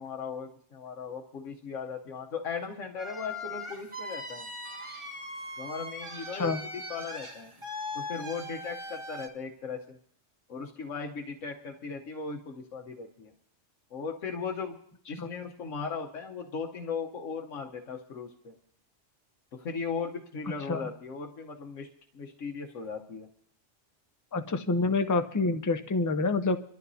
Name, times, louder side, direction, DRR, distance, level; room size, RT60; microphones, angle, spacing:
voice 1, 0.0-4.5 5.6-7.5 7.9-10.0 10.5-13.3 13.9-14.8 15.1-18.5 19.5-21.9 22.1-23.3, left 5 dB, 90° left, 1 dB, 1.3 m, -37 dB
sound 1, 3.0-9.3, left 1 dB, 25° right, 1.8 m, -40 dB
voice 2, 24.3-26.6, left 3 dB, 25° left, 8 dB, 0.4 m, -27 dB
26.5 x 12.5 x 2.7 m, 0.65 s
omnidirectional pair, 1.3 m